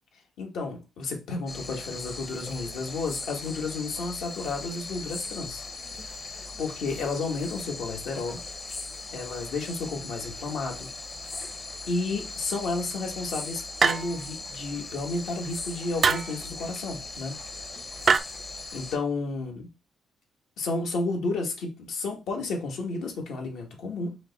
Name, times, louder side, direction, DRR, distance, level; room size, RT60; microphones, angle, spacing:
voice 1, 0.4-5.6 5.9-8.4 9.1-10.9 11.9-17.3 17.7-18.0 18.7-19.6 20.6-24.2, left 3 dB, 75° left, 1.2 m, -32 dB
sound 1, 1.5-19.0, left 3 dB, 35° left, 0.8 m, -39 dB
sound 2, 13.8-14.4 16.0-16.4 18.1-18.2, right 5 dB, 45° right, 0.3 m, -23 dB
5.0 x 2.2 x 3.9 m
cardioid pair, 90°, 0 cm